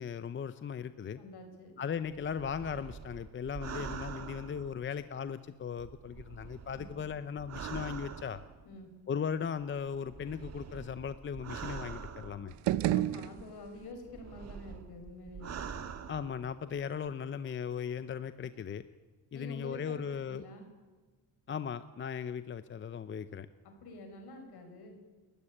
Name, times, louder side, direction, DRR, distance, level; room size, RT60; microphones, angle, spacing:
voice 1, 0.0-1.2 1.8-8.4 9.1-12.5 16.1-18.8 19.3-20.4 21.5-23.5, left 7 dB, 30° left, 13 dB, 0.6 m, -37 dB
voice 2, 1.1-1.7 6.7-7.0 8.6-8.9 12.9-15.6 19.3-20.7 23.6-25.0, left 1 dB, 65° left, 5 dB, 5.9 m, -48 dB
sound 1, 2.0-5.3 5.8-8.8 9.6-12.8 13.4-16.8 17.1-17.2, right 6 dB, 40° right, 1.7 m, -45 dB
sound 2, 12.5-13.9, right 13 dB, 80° right, 1.0 m, -31 dB
29.5 x 14.0 x 9.9 m, 1.3 s
cardioid pair, 140°, 42 cm